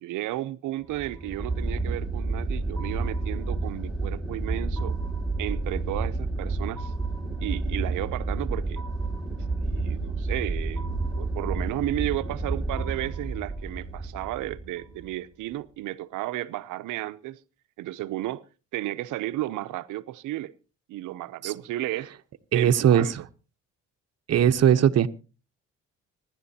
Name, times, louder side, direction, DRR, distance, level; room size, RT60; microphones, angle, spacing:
voice 1, 0.0-5.0 5.4-6.9 7.4-8.8 9.6-17.4 17.8-18.4 18.7-20.5 20.9-22.1 22.5-23.3, right 15 dB, 90° right, 0.7 m, -33 dB
sound 1, 0.9-15.1, right 3 dB, ahead, 2.2 m, -30 dB
voice 2, 22.5-23.2 24.3-25.1, right 9 dB, 55° right, 0.9 m, -19 dB
25.5 x 11.0 x 2.8 m
cardioid pair, 90°, 30 cm